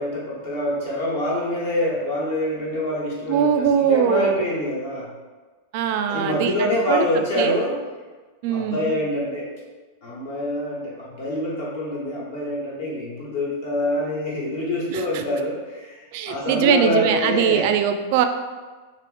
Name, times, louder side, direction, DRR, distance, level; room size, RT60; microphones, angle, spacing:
voice 1, 0.0-5.1 6.1-7.8 8.5-9.5 10.0-17.7, left 1 dB, 55° left, -4 dB, 1.2 m, -26 dB
voice 2, 3.3-4.4 5.7-7.1 7.4-7.6 8.4-8.9 14.9-15.2 16.1-18.2, right 8 dB, 50° right, 7 dB, 0.3 m, -21 dB
3.7 x 2.8 x 3.2 m, 1.3 s
figure-of-eight pair, 90°, 0 cm